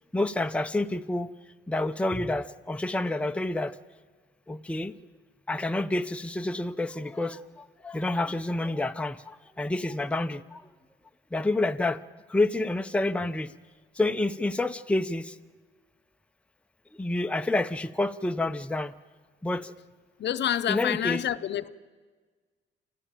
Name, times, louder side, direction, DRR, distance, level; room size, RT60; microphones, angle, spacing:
voice 1, 0.1-1.3 1.7-3.8 4.5-5.0 5.5-10.7 11.3-12.0 12.3-13.5 14.0-15.4 16.9-18.9 19.4-19.7 20.7-21.2, left 2 dB, 5° left, 0.7 m, -28 dB
voice 2, 20.2-21.7, left 10 dB, 60° left, 0.8 m, -28 dB
27.5 x 14.5 x 9.0 m
cardioid pair, 90°, 20 cm